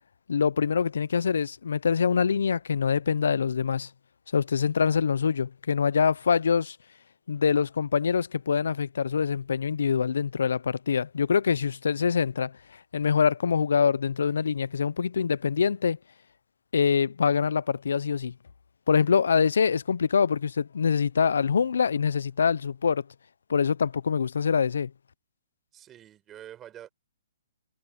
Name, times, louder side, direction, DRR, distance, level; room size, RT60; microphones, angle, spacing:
voice 1, 0.3-3.9 4.3-6.8 7.3-12.5 12.9-16.0 16.7-18.3 18.9-23.0 23.5-24.9, left 6 dB, 75° left, 0.7 m, -24 dB
voice 2, 25.7-26.9, right 11 dB, 20° right, 4.9 m, -46 dB
hypercardioid pair, 140°, 0 cm